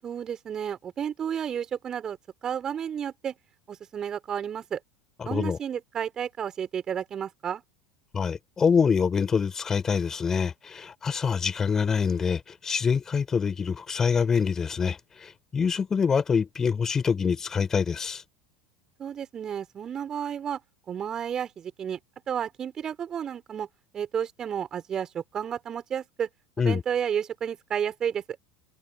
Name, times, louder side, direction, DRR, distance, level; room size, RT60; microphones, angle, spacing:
voice 1, 0.0-3.3 3.7-4.8 5.2-7.6 19.0-20.6 20.9-22.0 22.3-23.7 23.9-26.3 26.6-28.2, right 8 dB, 30° right, 5.8 m, -32 dB
voice 2, 5.2-5.6 8.1-18.2 26.6-26.8, left 6 dB, 25° left, 4.6 m, -25 dB
figure-of-eight pair, 75°, 2 cm